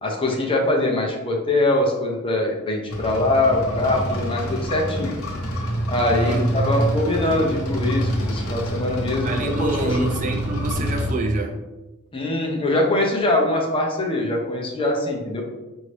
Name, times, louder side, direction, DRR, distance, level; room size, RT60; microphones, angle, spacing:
voice 1, 0.0-5.1 5.9-10.0 12.1-15.4, left 2 dB, 25° left, -1 dB, 0.7 m, -23 dB
sound 1, 2.9-11.1, equal, 70° left, 0.9 m, -26 dB
voice 2, 6.1-6.9 9.2-11.6, right 2 dB, 35° right, 4 dB, 0.4 m, -27 dB
4.7 x 2.7 x 3.2 m, 1.1 s
head